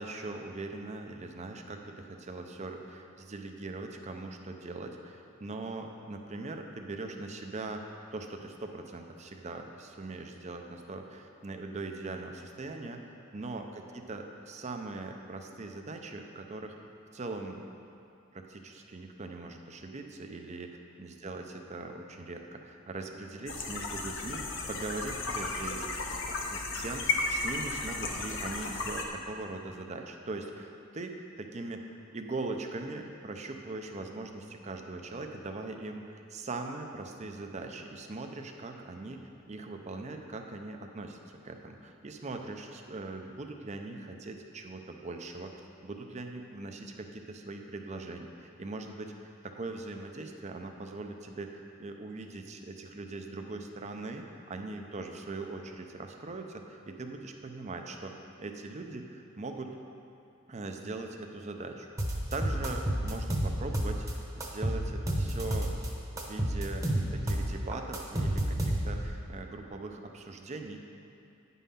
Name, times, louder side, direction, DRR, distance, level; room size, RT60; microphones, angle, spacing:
voice 1, 0.0-7.8 8.1-16.7 17.1-17.6 18.3-25.9 26.5-39.2 39.5-41.2 41.4-45.5 45.8-58.1 58.4-59.7 60.5-64.1 64.4-65.8 66.1-66.9 67.1-70.8, right 3 dB, 35° right, 4 dB, 0.6 m, -41 dB
sound 1, 23.5-29.0, left 3 dB, 60° left, 0.9 m, -34 dB
sound 2, 62.0-64.1 64.4-65.9 66.2-69.1, right 1 dB, 15° right, 1.0 m, -30 dB
9.4 x 5.5 x 5.6 m, 2.6 s
head